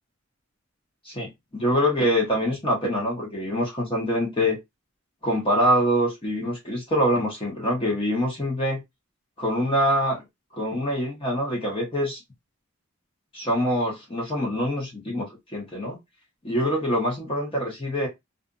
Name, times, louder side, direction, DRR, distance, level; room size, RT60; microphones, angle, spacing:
voice 1, 1.0-4.6 5.2-8.8 9.4-10.2 10.5-12.2 13.3-16.0 16.4-18.1, equal, 25° left, -1 dB, 0.9 m, -25 dB
2.5 x 2.4 x 2.5 m, 0.19 s
head